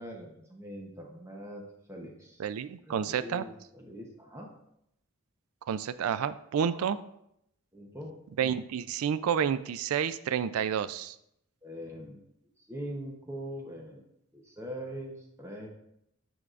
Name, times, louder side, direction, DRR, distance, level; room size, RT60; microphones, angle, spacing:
voice 1, 0.0-2.4 2.9-4.5 6.8-6.9 7.7-8.1 11.6-12.2 12.7-14.1 14.3-15.7, equal, 15° right, 0 dB, 0.7 m, -42 dB
voice 2, 2.4-3.4 5.7-7.0 8.4-11.2, right 8 dB, 85° right, 13 dB, 0.3 m, -30 dB
8.9 x 4.7 x 2.4 m, 0.77 s
head